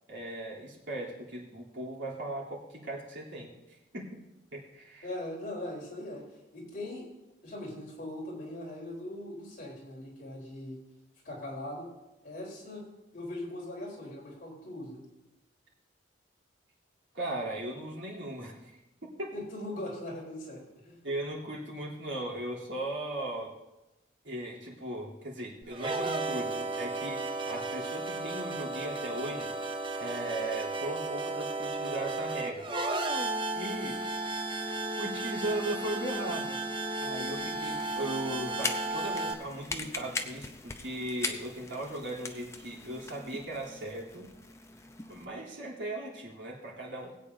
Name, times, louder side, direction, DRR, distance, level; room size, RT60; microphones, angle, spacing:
voice 1, 0.1-4.2 4.5-5.1 17.1-18.7 19.0-19.3 21.0-23.5 24.2-29.5 30.0-32.7 33.5-34.0 34.3-34.4 35.0-36.6 37.0-44.3 45.1-47.1, right 1 dB, 85° right, -5 dB, 3.3 m, -38 dB
voice 2, 5.0-6.2 6.5-7.1 7.4-10.8 11.2-11.9 12.2-12.9 13.1-15.0 19.3-21.0, left 1 dB, 45° left, -4 dB, 4.0 m, -40 dB
sound 1, 25.6-39.3, right 2 dB, 25° right, 0.7 m, -34 dB
sound 2, 37.1-45.2, left 3 dB, 15° left, 0.6 m, -41 dB
20.5 x 8.6 x 2.8 m, 0.99 s
head